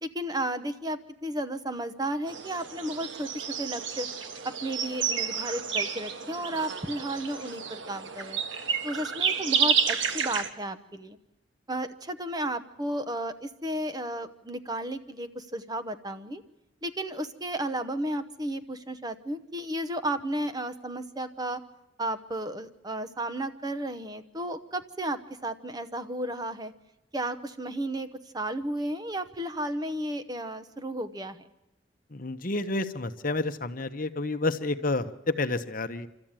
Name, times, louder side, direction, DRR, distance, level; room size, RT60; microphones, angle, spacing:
voice 1, 0.0-4.1 4.4-8.4 8.8-11.2 11.7-16.4 16.8-21.6 22.0-26.7 27.1-28.1 28.3-31.5, right 1 dB, 20° right, 10 dB, 0.8 m, -33 dB
sound 1, 2.3-10.5, right 6 dB, 70° right, 1.5 m, -30 dB
voice 2, 32.1-36.1, left 2 dB, 45° left, 9 dB, 0.9 m, -30 dB
27.5 x 13.0 x 8.9 m, 0.96 s
head